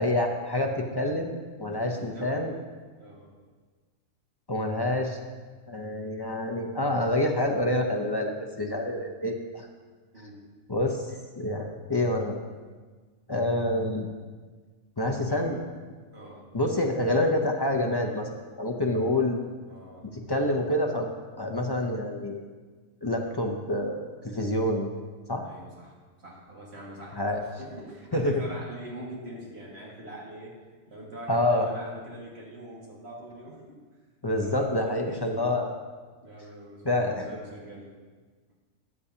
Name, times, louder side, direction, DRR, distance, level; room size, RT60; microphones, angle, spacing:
voice 1, 0.0-2.5 4.5-5.2 5.7-9.7 10.7-12.4 13.3-14.1 15.0-15.6 16.5-19.4 20.3-21.1 21.4-22.4 23.0-24.9 25.3-25.5 27.1-27.4 28.1-28.3 31.3-31.7 34.2-35.7 36.8-37.3, left 1 dB, 30° left, 1 dB, 0.5 m, -27 dB
voice 2, 1.6-2.4 3.0-3.3 10.1-10.4 15.2-15.6 16.1-16.5 19.7-20.6 25.4-30.6 30.9-33.8 34.4-35.6 36.2-37.9, right 1 dB, 55° right, -4 dB, 2.1 m, -44 dB
13.5 x 8.3 x 2.8 m, 1.4 s
omnidirectional pair, 1.3 m